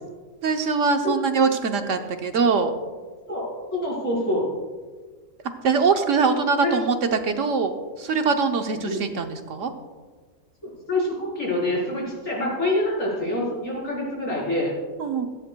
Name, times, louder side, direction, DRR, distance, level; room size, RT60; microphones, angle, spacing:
voice 1, 0.4-2.7 5.6-9.7 15.0-15.3, right 4 dB, 65° right, 6 dB, 1.1 m, -22 dB
voice 2, 3.3-4.5 6.6-6.8 8.8-9.0 10.6-14.7, left 1 dB, 65° left, -4 dB, 4.6 m, -26 dB
17.0 x 14.0 x 2.2 m, 1.4 s
omnidirectional pair, 1.5 m